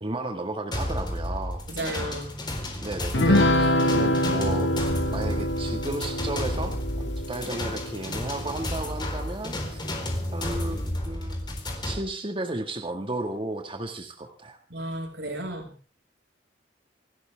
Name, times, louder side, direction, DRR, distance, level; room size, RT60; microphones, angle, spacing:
voice 1, 0.0-1.7 2.8-4.8 5.1-9.8 10.3-14.6, right 2 dB, 30° right, 4 dB, 1.9 m, -34 dB
sound 1, 0.7-12.0, left 1 dB, 25° left, 4.1 m, -32 dB
voice 2, 1.7-2.3 14.7-15.7, right 1 dB, 80° right, 3 dB, 6.1 m, -33 dB
sound 2, 3.1-8.8, left 1 dB, 90° left, 1.7 m, -25 dB
27.5 x 13.0 x 3.6 m, 0.35 s
head